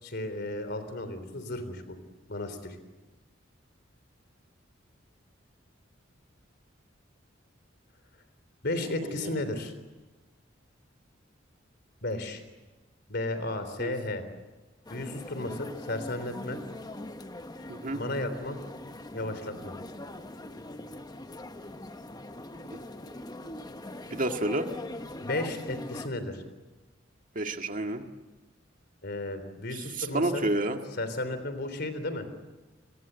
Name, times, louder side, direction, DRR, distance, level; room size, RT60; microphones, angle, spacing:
voice 1, 0.0-2.0 2.3-2.8 8.6-9.7 12.0-12.4 13.1-14.2 14.9-16.6 17.9-18.6 19.1-19.7 25.2-26.4 29.0-30.4 31.0-32.3, left 2 dB, 60° left, 11 dB, 3.6 m, -34 dB
voice 2, 9.0-9.4 13.8-14.0 17.7-18.0 24.1-24.7 27.4-28.0 29.7-30.8, right 2 dB, 45° right, 5 dB, 1.9 m, -30 dB
sound 1, 14.8-26.1, left 1 dB, 20° left, 1.0 m, -42 dB
27.5 x 22.0 x 8.1 m, 1.2 s
head